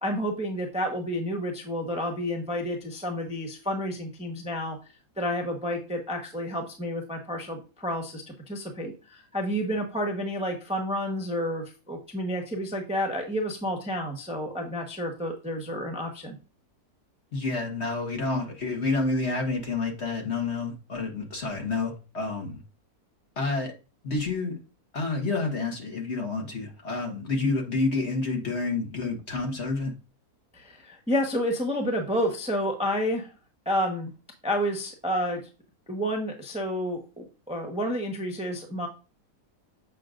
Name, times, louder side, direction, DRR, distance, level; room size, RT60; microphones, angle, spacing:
voice 1, 0.0-4.8 5.2-16.4 30.5-33.3 33.6-34.1 34.4-35.4 35.9-38.9, equal, 5° right, 2 dB, 0.9 m, -30 dB
voice 2, 17.3-22.6 23.4-23.7 24.0-24.5 24.9-29.9, left 3 dB, 45° left, 1 dB, 1.7 m, -29 dB
7.6 x 5.8 x 2.5 m, 0.32 s
omnidirectional pair, 1.7 m